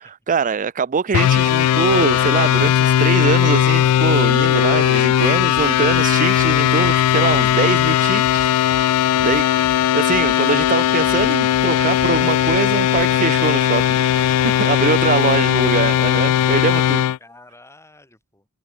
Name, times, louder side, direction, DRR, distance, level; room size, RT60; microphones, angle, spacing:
voice 1, 0.0-9.5 9.9-17.0, right 5 dB, 35° right, 0.5 m, -23 dB
sound 1, 1.1-17.2, left 10 dB, 85° left, 0.3 m, -17 dB
Bass drum, 5.5-6.0 6.4-7.0 7.3-7.9 8.2-8.8 9.2-9.8 10.1-10.7 11.0-11.7 12.0-12.6 12.9-13.0, equal, 65° left, 7.1 m, -39 dB
voice 2, 17.2-18.5, left 2 dB, 10° left, 6.6 m, -49 dB
open air
head